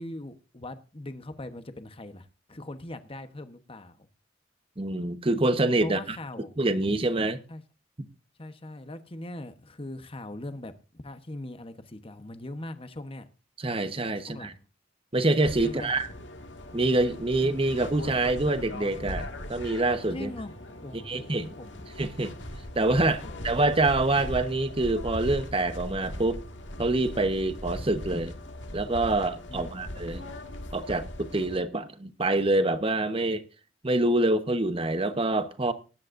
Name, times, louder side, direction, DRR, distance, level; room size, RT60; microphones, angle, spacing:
voice 1, 0.0-4.1 5.8-6.6 7.5-7.6 8.4-13.3 14.2-14.6 15.6-15.9 20.1-20.5 20.8-22.0 23.2-23.5 29.5-29.8, left 1 dB, 30° left, 1.0 m, -41 dB
voice 2, 4.8-6.2 6.6-7.4 13.6-14.5 15.1-16.1 16.7-20.3 21.1-21.5 22.0-22.3 22.7-26.4 26.8-28.3 28.7-30.2 30.7-33.4 33.8-35.7, right 2 dB, 30° right, 1.1 m, -26 dB
sound 1, 15.4-31.6, left 1 dB, 70° left, 1.9 m, -39 dB
19.5 x 10.5 x 2.6 m
head